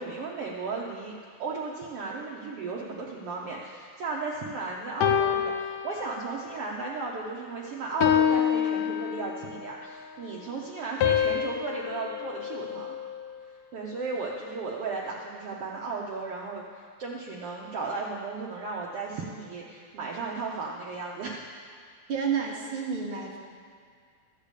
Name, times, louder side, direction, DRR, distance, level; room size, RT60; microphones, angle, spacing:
voice 1, 0.0-13.0 13.7-21.5, right 3 dB, 85° right, -3 dB, 1.3 m, -35 dB
sound 1, 5.0-6.6 7.0-7.3 8.0-9.7 11.0-13.4, left 9 dB, 90° left, 1.5 m, -27 dB
voice 2, 22.1-23.4, right 6 dB, 45° right, -3 dB, 1.9 m, -30 dB
13.5 x 6.8 x 8.3 m, 2.1 s
omnidirectional pair, 4.1 m